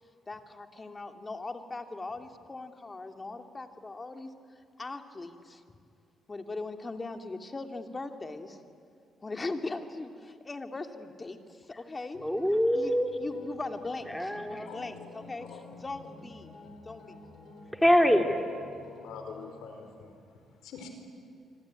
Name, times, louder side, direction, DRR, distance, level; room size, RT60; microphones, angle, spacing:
voice 1, 0.3-4.3 4.8-5.6 6.3-8.6 9.2-12.2 12.7-17.2, left 3 dB, 25° left, 6 dB, 2.3 m, -40 dB
sound 1, 12.1-19.5, left 3 dB, 65° left, 5.1 m, -51 dB
voice 2, 12.2-13.1 14.1-14.7 17.8-18.4, equal, 5° left, 4 dB, 2.9 m, -24 dB
voice 3, 14.7-15.2 15.5-15.6 19.0-20.1 20.6-20.9, left 5 dB, 90° left, 6 dB, 4.4 m, -44 dB
26.0 x 24.5 x 9.5 m, 2.3 s
cardioid pair, 90°, 0 cm